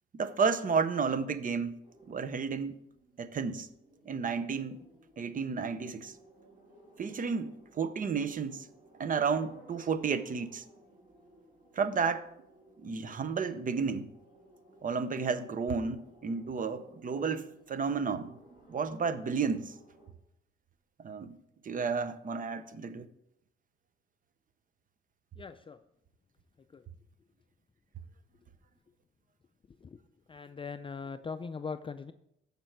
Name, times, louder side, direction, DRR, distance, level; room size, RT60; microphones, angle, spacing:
voice 1, 0.1-1.8 2.1-2.7 3.2-3.7 4.1-4.8 5.2-6.1 7.0-8.7 9.0-10.6 11.7-12.3 12.8-14.1 14.8-18.4 18.7-19.8 21.0-21.4 21.6-23.1, right 5 dB, 45° right, 0.8 m, -32 dB
sound 1, 1.8-20.1, right 2 dB, 25° right, 4.1 m, -59 dB
voice 2, 25.4-25.8 26.7-26.8 29.8-30.0 30.3-32.1, left 5 dB, 25° left, 0.4 m, -40 dB
14.0 x 5.2 x 4.7 m
cardioid pair, 90°, 20 cm